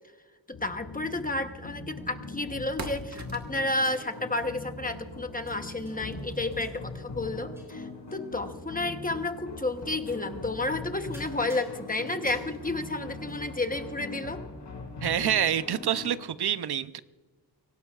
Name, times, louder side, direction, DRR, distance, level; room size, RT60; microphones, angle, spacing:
sound 1, 0.5-16.2, left 3 dB, 75° left, 4.9 m, -41 dB
voice 1, 0.5-14.4, left 2 dB, 20° left, 6 dB, 0.9 m, -31 dB
sound 2, 1.6-11.5, right 3 dB, 40° right, 1.4 m, -50 dB
sound 3, 3.6-4.9 5.4-6.2 6.5-7.3 7.5-8.2 9.0-9.1 10.0-10.4 10.7-10.8 11.1-14.1, equal, 5° right, 4.9 m, -56 dB
voice 2, 15.0-17.0, right 9 dB, 65° right, 14 dB, 0.7 m, -27 dB
24.0 x 17.5 x 2.4 m, 1.3 s
wide cardioid pair, 150°, 43 cm